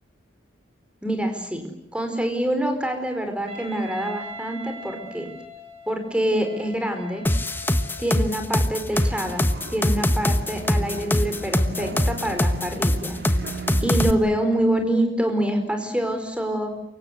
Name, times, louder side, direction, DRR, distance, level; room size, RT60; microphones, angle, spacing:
voice 1, 1.0-1.6 1.9-5.3 5.9-7.2 8.0-13.2 13.8-16.7, right 1 dB, 5° right, 5 dB, 4.7 m, -26 dB
Wind instrument woodwind instrument, 3.5-8.5, equal, 30° right, 7.7 m, -41 dB
sound 1, 7.3-14.1, left 1 dB, 10° left, 1.1 m, -22 dB
sound 2, 8.9-14.2, right 1 dB, 55° right, 1.8 m, -37 dB
28.5 x 24.5 x 8.0 m, 0.82 s
head